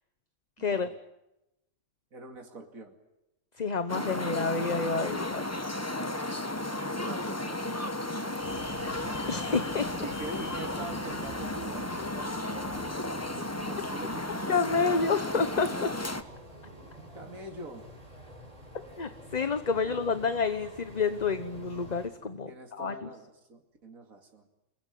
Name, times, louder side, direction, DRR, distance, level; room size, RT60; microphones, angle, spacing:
voice 1, 0.6-0.9 2.1-2.9 5.8-8.4 10.0-15.5 16.9-17.9 19.6-20.4 22.5-24.5, right 2 dB, 75° right, 3 dB, 2.9 m, -45 dB
voice 2, 3.6-5.4 9.3-9.9 14.5-15.9 19.0-22.5 22.8-23.1, left 5 dB, 30° left, 10 dB, 1.1 m, -29 dB
sound 1, 3.9-16.2, left 1 dB, 10° left, 1.2 m, -34 dB
sound 2, 8.4-22.1, equal, 25° right, 5.3 m, -47 dB
29.0 x 21.0 x 9.4 m, 0.93 s
omnidirectional pair, 1.5 m